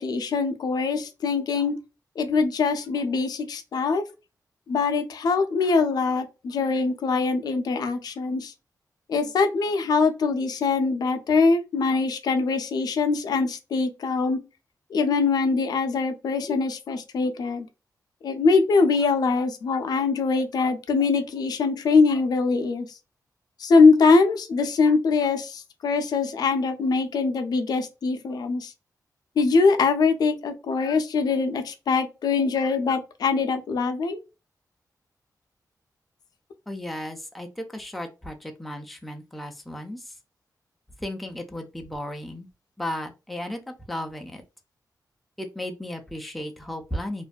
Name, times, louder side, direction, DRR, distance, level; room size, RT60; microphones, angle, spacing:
voice 1, 0.0-1.8 2.2-4.0 4.7-8.5 9.1-14.4 14.9-17.7 18.2-22.9 23.6-28.7 29.4-34.2, left 4 dB, 70° left, 0.4 m, -23 dB
voice 2, 36.7-40.2 41.0-42.5 42.8-44.4 45.4-47.2, left 1 dB, ahead, 0.3 m, -35 dB
2.5 x 2.2 x 2.3 m
wide cardioid pair, 165°, 7 cm